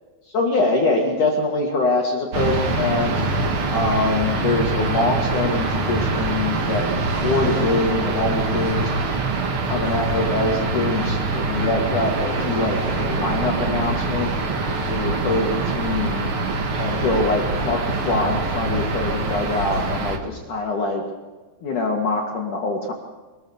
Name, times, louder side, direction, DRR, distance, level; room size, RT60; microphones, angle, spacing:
voice 1, 0.3-3.2 3.7-6.9 7.2-8.9 9.7-14.3 14.9-16.3 16.8-21.0 21.6-22.9, left 2 dB, 50° left, 1 dB, 2.7 m, -24 dB
sound 1, 2.3-20.2, right 3 dB, 65° right, 1.3 m, -24 dB
24.0 x 20.0 x 7.2 m, 1.3 s
omnidirectional pair, 5.8 m